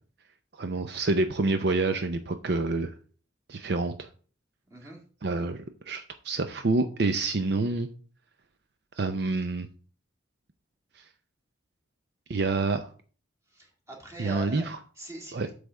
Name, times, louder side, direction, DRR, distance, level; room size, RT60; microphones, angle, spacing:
voice 1, 0.6-2.9 3.5-4.1 5.2-7.9 9.0-9.7 12.3-12.9 14.2-14.8 15.3-15.5, right 3 dB, 60° right, 8 dB, 0.6 m, -27 dB
voice 2, 4.7-5.0 13.5-14.7 15.0-15.5, right 2 dB, 15° right, -1 dB, 2.1 m, -42 dB
8.0 x 3.5 x 6.3 m, 0.40 s
head